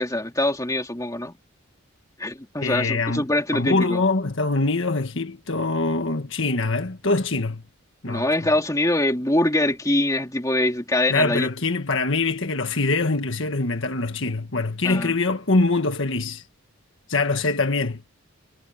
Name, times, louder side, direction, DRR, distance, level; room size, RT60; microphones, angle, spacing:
voice 1, 0.0-1.4 2.2-4.0 8.1-11.5 14.8-15.1, left 1 dB, 15° left, 2.6 m, -23 dB
voice 2, 2.6-3.3 3.5-7.6 8.0-8.3 11.1-16.4 17.1-18.0, left 3 dB, 60° left, 1.6 m, -24 dB
head